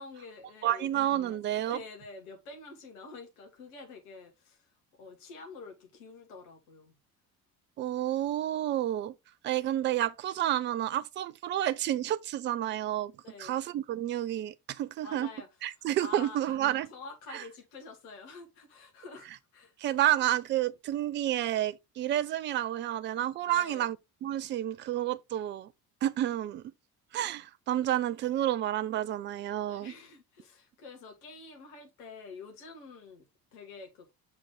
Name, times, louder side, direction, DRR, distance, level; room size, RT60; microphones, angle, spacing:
voice 1, 0.0-0.9 1.3-1.4 1.7-4.7 5.0-6.9 13.2-13.6 15.0-15.5 16.0-16.6 16.9-19.7 23.4-23.9 29.7-34.1, left 4 dB, 65° left, 2.0 m, -47 dB
voice 2, 0.6-1.8 7.8-9.1 9.4-13.1 13.4-15.3 15.6-16.9 17.3-17.4 19.8-24.0 24.2-25.7 26.0-26.6 27.1-29.9, right 12 dB, 25° right, 0.4 m, -30 dB
6.0 x 4.4 x 3.7 m
figure-of-eight pair, 60°, 47 cm